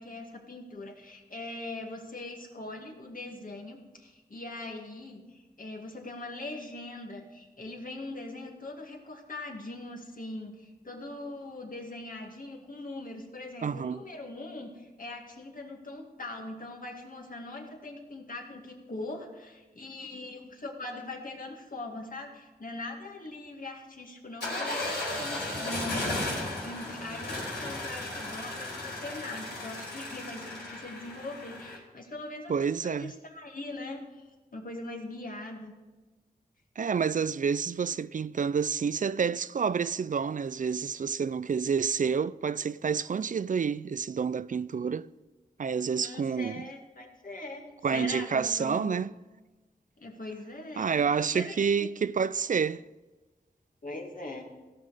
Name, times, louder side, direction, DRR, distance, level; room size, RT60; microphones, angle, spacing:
voice 1, 0.0-35.7 46.0-49.1 50.0-51.9 53.8-54.5, left 2 dB, 55° left, 2.1 m, -41 dB
voice 2, 13.6-14.0 32.5-33.1 36.8-45.1 45.6-46.6 47.8-49.1 50.8-52.8, right 6 dB, 50° right, 0.4 m, -29 dB
sound 1, 24.4-31.8, left 1 dB, 90° left, 3.6 m, -35 dB
16.5 x 6.3 x 5.0 m
wide cardioid pair, 55°, 17 cm